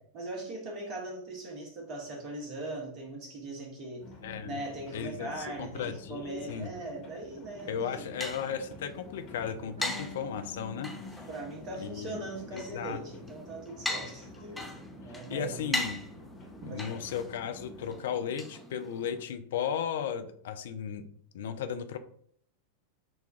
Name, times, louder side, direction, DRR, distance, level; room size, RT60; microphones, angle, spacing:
voice 1, 0.1-4.1 4.4-8.1 11.3-14.7 15.0-15.7 16.6-17.0, right 2 dB, 35° right, 1 dB, 1.1 m, -40 dB
sound 1, 4.0-18.0, left 1 dB, 35° left, 1.1 m, -51 dB
voice 2, 4.2-4.6 4.9-6.7 7.7-11.3 11.8-12.2 12.5-13.0 15.1-16.0 16.6-21.0 21.3-22.0, left 8 dB, 60° left, 8 dB, 0.4 m, -35 dB
sound 2, 7.6-19.2, left 1 dB, 5° left, 0.5 m, -41 dB
Harp, 9.8-13.2 13.5-14.6, left 4 dB, 75° right, 1.3 m, -50 dB
6.0 x 2.3 x 2.4 m, 0.62 s
figure-of-eight pair, 90°, 0 cm